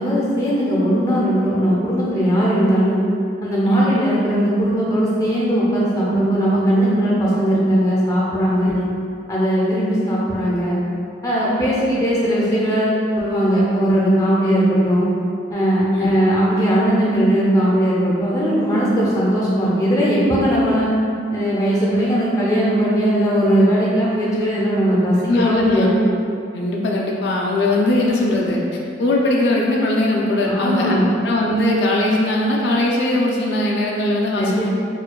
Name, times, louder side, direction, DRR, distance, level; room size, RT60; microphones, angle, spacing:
voice 1, 0.0-3.0 3.4-8.8 9.3-10.8 11.2-15.1 15.5-20.9 21.3-25.9 30.5-31.1 34.3-34.7, equal, 20° left, -7 dB, 0.5 m, -18 dB
voice 2, 3.7-4.0 8.6-8.9 15.9-16.1 25.0-25.9 26.5-34.7, left 1 dB, 70° left, -2 dB, 0.4 m, -20 dB
4.4 x 2.5 x 2.2 m, 2.5 s
head